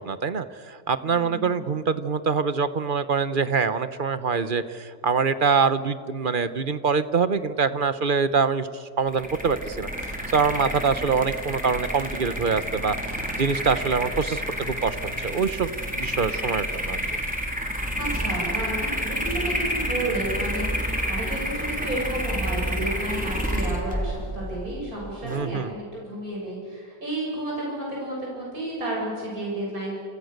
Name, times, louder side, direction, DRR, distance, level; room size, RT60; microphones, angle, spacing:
voice 1, 0.0-9.9 10.3-12.9 13.3-14.4 14.7-15.7 16.0-17.0 25.2-25.7, right 5 dB, 40° right, 12 dB, 1.0 m, -24 dB
voice 2, 1.0-1.6 17.7-30.0, right 1 dB, 60° right, -4 dB, 8.1 m, -32 dB
sound 1, 9.1-25.4, equal, 5° right, 3.4 m, -29 dB
29.5 x 27.5 x 6.7 m, 2.2 s
omnidirectional pair, 1.7 m